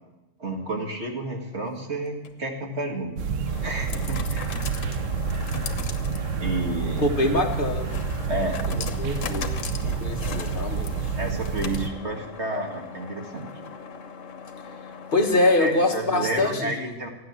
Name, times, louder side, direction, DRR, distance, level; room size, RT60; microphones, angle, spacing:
voice 1, 0.4-3.2 3.6-4.5 6.4-7.1 8.3-8.6 11.2-13.5 15.6-17.1, right 2 dB, 60° right, 2 dB, 2.2 m, -30 dB
sound 1, 2.1-16.0, left 6 dB, 85° left, 1.3 m, -39 dB
sound 2, 3.2-11.9, right 6 dB, 85° right, 1.1 m, -29 dB
voice 2, 7.0-7.9 8.7-9.6 9.8-10.9 15.1-16.9, left 2 dB, 45° left, 4 dB, 1.4 m, -24 dB
14.0 x 9.7 x 7.4 m, 1.0 s
omnidirectional pair, 1.3 m